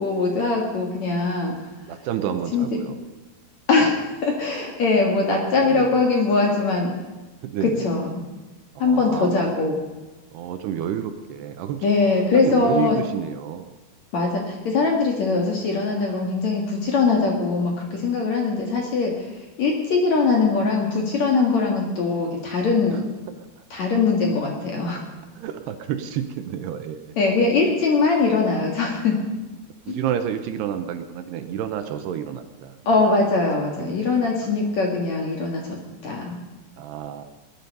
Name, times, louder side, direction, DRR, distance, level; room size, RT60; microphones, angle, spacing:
voice 1, 0.0-1.5 2.5-2.7 3.7-7.0 7.8-8.2 8.8-9.8 11.8-13.0 14.1-19.1 19.6-23.0 23.7-25.0 27.2-29.2 29.9-30.0 32.9-35.8 36.0-36.4, left 4 dB, 50° left, 1 dB, 2.4 m, -21 dB
voice 2, 1.9-3.0 5.6-6.0 7.4-7.9 8.8-9.7 10.3-11.9 12.2-13.7 22.9-23.0 23.6-23.7 25.4-27.2 29.9-32.8 33.8-34.6 36.8-37.3, right 9 dB, 75° right, 8 dB, 2.7 m, -30 dB
20.0 x 11.0 x 5.4 m, 1.2 s
omnidirectional pair, 5.1 m